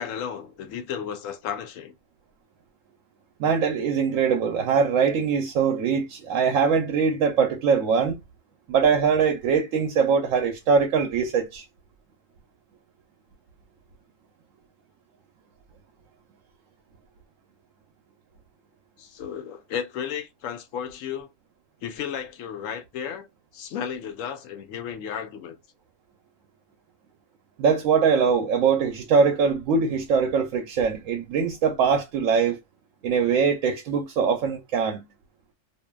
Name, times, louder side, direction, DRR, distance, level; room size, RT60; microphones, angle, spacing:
voice 1, 0.0-1.9 19.0-21.3 21.8-23.3 23.5-25.6, left 8 dB, 85° left, 1.0 m, -33 dB
voice 2, 3.4-8.2 8.7-11.6 27.6-32.6 33.0-35.0, right 6 dB, 90° right, 1.0 m, -22 dB
2.7 x 2.5 x 2.2 m
omnidirectional pair, 1.3 m